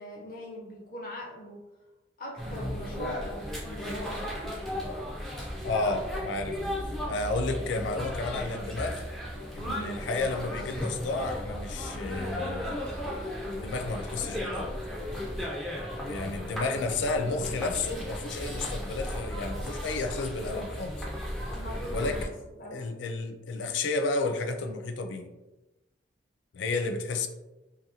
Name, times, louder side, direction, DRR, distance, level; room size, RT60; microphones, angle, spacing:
voice 1, 0.0-1.6 2.2-4.5 9.7-10.0 21.5-22.2 22.5-23.0, equal, 50° left, -3 dB, 0.7 m, -41 dB
sound 1, 2.4-22.3, equal, ahead, 0.3 m, -35 dB
voice 2, 5.6-6.7 7.1-9.0 9.5-13.0 13.5-14.7 16.1-21.1 21.9-22.3 22.7-25.3 26.5-27.3, left 3 dB, 80° left, 6 dB, 0.4 m, -32 dB
2.7 x 2.4 x 2.7 m, 1.0 s
head